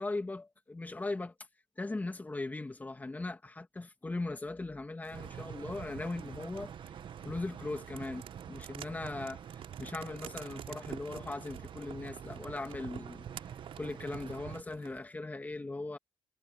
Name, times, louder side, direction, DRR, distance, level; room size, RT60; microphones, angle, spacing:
voice 1, 0.0-1.3 1.8-6.7 7.2-9.4 9.8-13.2 13.8-16.0, left 2 dB, 15° left, 2.6 m, -39 dB
sound 1, 5.0-15.1, right 10 dB, 70° right, 6.7 m, -51 dB
sound 2, 5.1-14.6, right 9 dB, 55° right, 1.6 m, -46 dB
cardioid pair, 120°, 10 cm